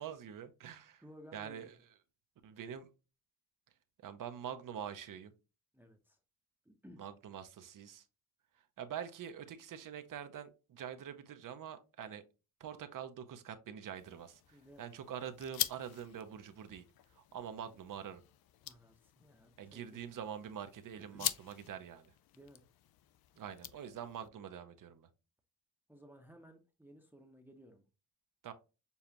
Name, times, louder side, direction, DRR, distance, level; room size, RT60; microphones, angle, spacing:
voice 1, 0.0-1.0 1.3-1.7 2.4-2.9 4.0-5.3 7.0-8.0 8.8-12.2 12.6-16.8 17.1-18.2 19.6-22.1 23.4-25.1 28.4-28.5, right 8 dB, 55° right, 0.7 m, -45 dB
voice 2, 1.0-1.8 5.7-6.2 6.6-7.0 14.5-14.9 18.6-20.0 21.0-21.3 22.3-22.6 25.9-27.8, equal, 5° right, 0.8 m, -57 dB
sound 1, 13.9-24.3, left 13 dB, 70° left, 0.5 m, -45 dB
6.9 x 2.4 x 2.9 m
cardioid pair, 95°, 38 cm